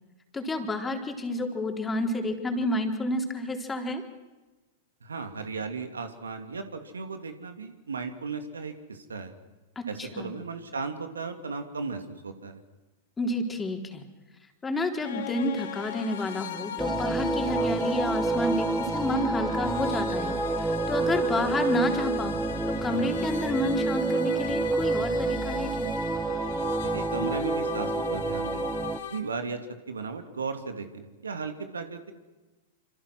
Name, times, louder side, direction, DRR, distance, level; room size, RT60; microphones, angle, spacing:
voice 1, 0.3-4.0 9.8-10.3 13.2-14.0 14.6-20.3 20.6-22.4 22.8-25.9, left 1 dB, 15° left, 4 dB, 3.9 m, -30 dB
voice 2, 5.0-9.3 9.9-12.6 26.8-28.6 29.1-29.6 29.9-32.1, right 4 dB, 85° right, 7 dB, 2.9 m, -36 dB
sound 1, 15.0-29.2, left 8 dB, 65° left, 3.1 m, -38 dB
sound 2, 16.8-29.0, right 3 dB, 10° right, 1.2 m, -28 dB
27.0 x 26.5 x 6.3 m, 1.1 s
hypercardioid pair, 105°, 0 cm